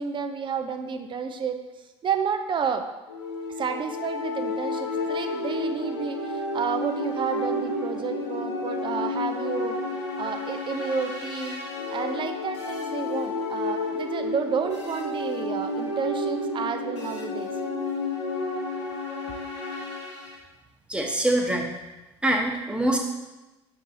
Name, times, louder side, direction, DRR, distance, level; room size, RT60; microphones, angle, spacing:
voice 1, 0.0-1.6 2.0-2.9 3.6-9.8 10.2-11.6 11.9-17.5, right 6 dB, 35° right, 7 dB, 0.8 m, -30 dB
sound 1, 3.1-20.3, left 2 dB, 85° left, 1.7 m, -31 dB
voice 2, 20.9-21.7 22.2-23.0, right 1 dB, 5° right, 1 dB, 1.3 m, -24 dB
8.1 x 6.1 x 2.9 m, 1.1 s
figure-of-eight pair, 60°, 15 cm